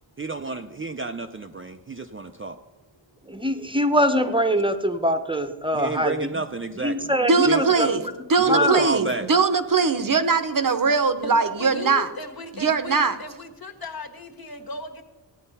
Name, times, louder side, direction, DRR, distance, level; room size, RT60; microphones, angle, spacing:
voice 1, 0.2-2.6 5.7-7.1 7.4-7.9 8.5-9.3, right 3 dB, 30° right, 6 dB, 0.6 m, -30 dB
voice 2, 3.3-6.4 6.8-7.9 8.5-8.9, equal, 10° right, 6 dB, 0.9 m, -23 dB
voice 3, 7.2-8.0 8.3-12.1 12.6-13.2, right 4 dB, 45° right, 10 dB, 0.9 m, -21 dB
voice 4, 11.2-15.0, left 2 dB, 50° left, 4 dB, 1.7 m, -36 dB
15.0 x 9.2 x 5.5 m, 1.1 s
wide cardioid pair, 120°, 45 cm